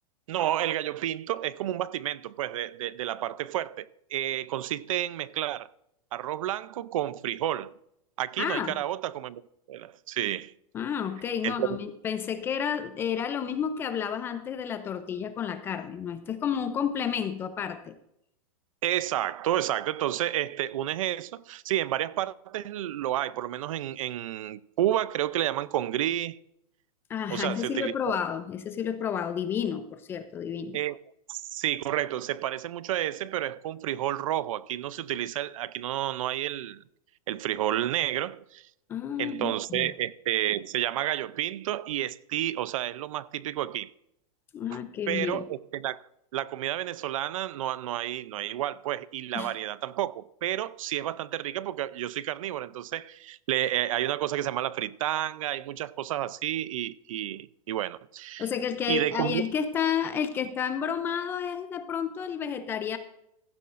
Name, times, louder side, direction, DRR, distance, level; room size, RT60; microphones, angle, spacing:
voice 1, 0.3-5.7 6.1-7.8 8.2-9.4 9.7-10.5 11.4-11.8 18.8-26.4 27.3-28.2 30.7-31.0 31.3-36.8 37.3-38.7 39.2-43.9 45.1-46.0 46.3-58.4 58.9-59.4, right 12 dB, 60° right, 0.5 m, -30 dB
voice 2, 8.4-8.7 10.7-17.9 27.1-30.8 38.9-39.9 44.5-45.4 49.3-49.5 58.4-63.0, left 8 dB, 10° left, 0.4 m, -31 dB
15.5 x 11.5 x 2.5 m
supercardioid pair, 170°, 19 cm